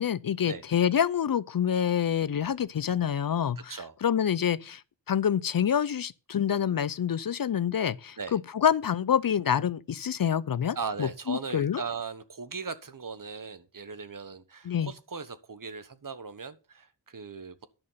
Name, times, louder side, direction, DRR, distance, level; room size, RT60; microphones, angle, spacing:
voice 1, 0.0-4.8 5.1-11.8 14.7-14.9, left 8 dB, 50° left, 0.6 m, -27 dB
voice 2, 3.6-3.9 8.2-8.4 10.7-17.7, right 5 dB, 45° right, 1.2 m, -38 dB
11.0 x 6.3 x 5.6 m
cardioid pair, 40°, 44 cm